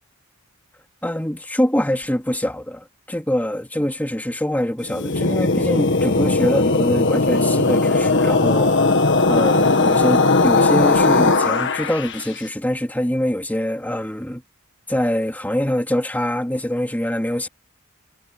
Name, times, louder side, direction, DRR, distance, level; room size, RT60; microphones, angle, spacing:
voice 1, 1.0-8.8 9.3-14.4 14.9-17.5, equal, 10° left, 2.5 m, -24 dB
sound 1, 4.8-12.2, left 3 dB, 55° left, 1.6 m, -18 dB
head